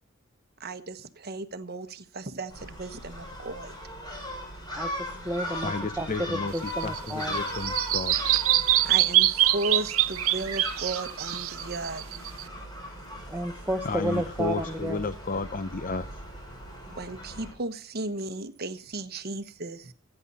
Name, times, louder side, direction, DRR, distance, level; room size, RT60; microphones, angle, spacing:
voice 1, 0.6-3.8 8.8-12.0 16.9-19.9, right 2 dB, 50° right, 10 dB, 1.3 m, -35 dB
Gull seagull, 2.5-17.5, left 1 dB, 20° left, 6.3 m, -38 dB
voice 2, 4.8-7.4 13.1-15.0 16.7-16.8, right 1 dB, 10° right, 5 dB, 0.9 m, -32 dB
voice 3, 5.6-6.5 6.8-8.2 13.8-16.2, left 3 dB, 40° left, 12 dB, 0.7 m, -32 dB
Bird vocalization bird call bird song, 6.5-12.4, right 15 dB, 75° right, 0.7 m, -24 dB
27.0 x 10.0 x 4.2 m, 0.37 s
head